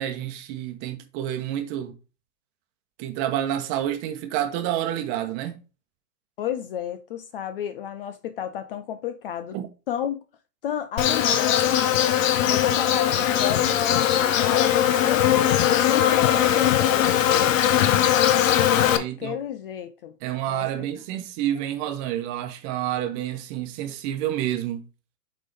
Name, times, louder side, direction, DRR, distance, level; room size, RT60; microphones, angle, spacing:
voice 1, 0.0-1.9 3.0-5.5 9.5-9.7 18.9-19.4 20.2-24.8, right 11 dB, 30° right, 1.0 m, -29 dB
voice 2, 6.4-9.6 9.9-10.2 10.6-17.3 18.9-20.2 20.5-20.7, left 9 dB, 35° left, 0.5 m, -32 dB
Insect, 11.0-19.0, left 10 dB, 55° left, 0.9 m, -20 dB
8.3 x 3.7 x 3.4 m
hypercardioid pair, 120°, 48 cm